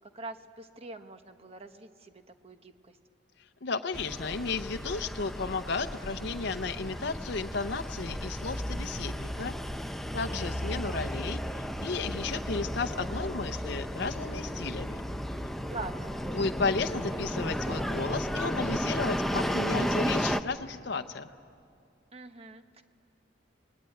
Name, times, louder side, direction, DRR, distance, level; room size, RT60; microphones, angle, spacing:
voice 1, 0.0-3.0 15.7-16.1 22.1-22.8, right 3 dB, 30° right, 8 dB, 1.1 m, -44 dB
voice 2, 3.6-9.5 10.1-15.0 16.3-21.3, left 4 dB, 60° left, 7 dB, 0.7 m, -33 dB
sound 1, 3.9-20.4, equal, ahead, 0.6 m, -33 dB
27.5 x 20.0 x 9.2 m, 2.4 s
head